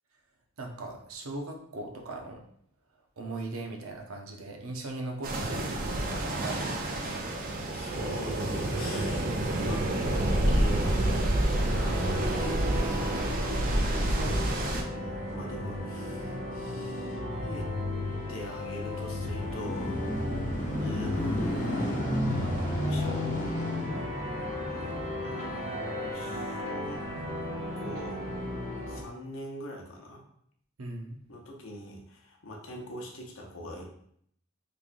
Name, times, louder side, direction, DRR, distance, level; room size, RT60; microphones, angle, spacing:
voice 1, 0.6-2.4 3.2-6.8 11.6-11.9 14.0-14.7 20.2-20.5 30.8-31.2, right 2 dB, 80° right, 2 dB, 0.7 m, -39 dB
sound 1, 5.2-14.8, right 1 dB, 40° right, 0.4 m, -28 dB
voice 2, 7.3-14.2 14.9-17.7 18.3-20.0 20.8-21.9 22.8-23.6 24.8-24.9 25.2-27.0 27.8-28.2 28.5-30.2 31.3-33.9, equal, 75° left, 0 dB, 0.8 m, -42 dB
sound 2, 11.5-29.0, left 1 dB, 55° right, 1.2 m, -36 dB
sound 3, 18.8-27.3 27.9-28.1, left 1 dB, 35° left, 0.7 m, -33 dB
3.6 x 3.2 x 2.5 m, 0.68 s
head